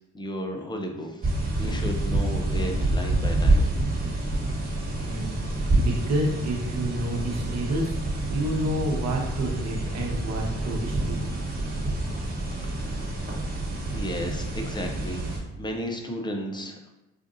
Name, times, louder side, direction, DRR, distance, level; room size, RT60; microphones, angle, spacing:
voice 1, 0.1-1.3 1.6-3.7 12.8-13.1 13.9-16.8, equal, 15° left, 3 dB, 0.6 m, -34 dB
sound 1, 1.2-15.4, right 2 dB, 30° right, 1.1 m, -27 dB
voice 2, 5.0-11.2, right 1 dB, 60° right, 0 dB, 1.0 m, -29 dB
5.1 x 2.5 x 2.6 m, 1.0 s
cardioid pair, 90°, 30 cm